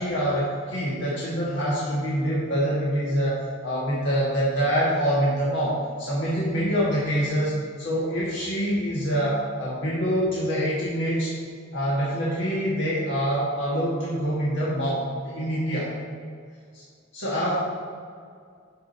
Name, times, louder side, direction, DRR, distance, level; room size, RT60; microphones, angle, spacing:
voice 1, 0.0-11.3 11.7-15.9 16.7-16.8 17.1-17.5, equal, 60° left, -7 dB, 1.5 m, -25 dB
11.0 x 5.0 x 4.2 m, 2.2 s
head